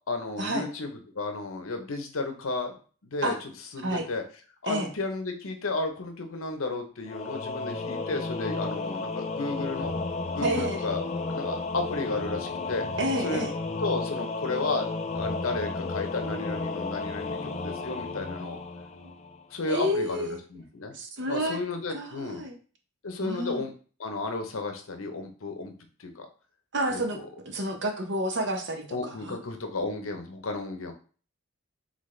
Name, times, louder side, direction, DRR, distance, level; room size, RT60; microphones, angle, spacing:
voice 1, 0.1-2.7 3.0-4.2 4.6-10.0 10.3-12.8 13.2-13.5 13.8-18.6 19.5-20.9 21.3-22.4 23.0-23.7 24.0-25.7 26.0-26.3 26.9-27.2 28.9-30.9, left 3 dB, 85° left, 5 dB, 0.8 m, -33 dB
Singing / Musical instrument, 7.1-19.5, left 3 dB, 30° left, 0.3 m, -33 dB
voice 2, 10.4-10.8 13.0-13.5 19.7-20.4 20.9-21.6 21.9-22.6 23.2-23.6 26.7-27.2 27.5-29.4, right 1 dB, 60° right, 4 dB, 0.8 m, -30 dB
3.9 x 3.6 x 3.3 m, 0.40 s
head